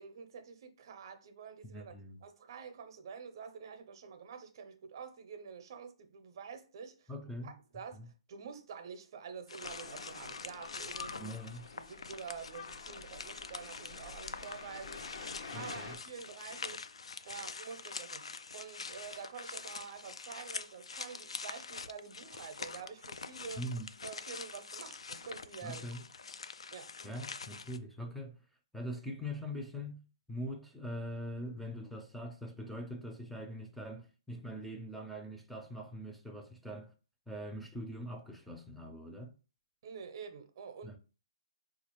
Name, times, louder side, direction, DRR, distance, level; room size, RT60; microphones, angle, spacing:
voice 1, 0.0-1.9 2.2-7.1 7.4-11.4 11.7-16.8 17.2-23.6 24.0-26.0 26.7-26.9 39.8-41.0, right 6 dB, 50° right, 0.6 m, -48 dB
voice 2, 1.6-2.2 7.1-7.5 7.9-8.1 11.2-11.7 15.5-16.0 23.6-23.9 25.6-26.0 27.0-28.4 28.7-30.0 30.3-36.9 37.3-39.3 40.8-41.0, equal, ahead, 0.4 m, -42 dB
sound 1, 9.5-27.8, left 5 dB, 90° left, 0.3 m, -45 dB
sound 2, 9.6-16.0, left 4 dB, 70° left, 0.7 m, -48 dB
3.8 x 2.4 x 3.0 m
hypercardioid pair, 155°, 3 cm